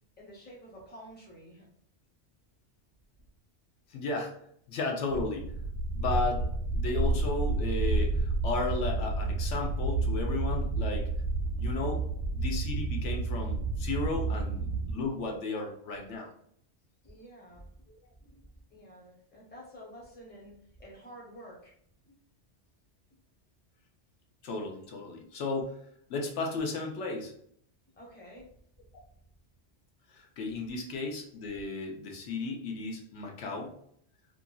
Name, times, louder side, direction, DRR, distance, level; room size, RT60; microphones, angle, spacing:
voice 1, 0.2-1.7 17.0-17.7 18.2-18.4 18.7-21.7 22.1-22.2 28.0-28.5, equal, 10° left, -3 dB, 0.7 m, -50 dB
voice 2, 3.9-4.3 4.7-5.4 5.9-6.5 6.7-11.1 11.6-12.1 12.3-16.3 24.4-25.8 26.1-27.3 30.1-33.7, left 3 dB, 80° left, 1 dB, 1.0 m, -34 dB
sound 1, 5.1-14.9, right 2 dB, 90° right, 0.9 m, -30 dB
2.8 x 2.5 x 2.3 m, 0.66 s
omnidirectional pair, 1.2 m